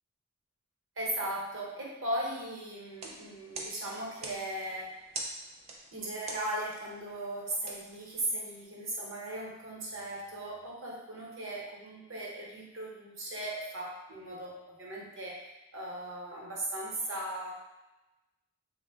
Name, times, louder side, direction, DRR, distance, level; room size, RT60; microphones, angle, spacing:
voice 1, 1.0-4.9 5.9-17.5, right 1 dB, 60° right, -4 dB, 0.8 m, -37 dB
sound 1, 2.8-8.6, right 2 dB, 30° right, 0.3 m, -45 dB
3.4 x 2.1 x 3.4 m, 1.0 s
head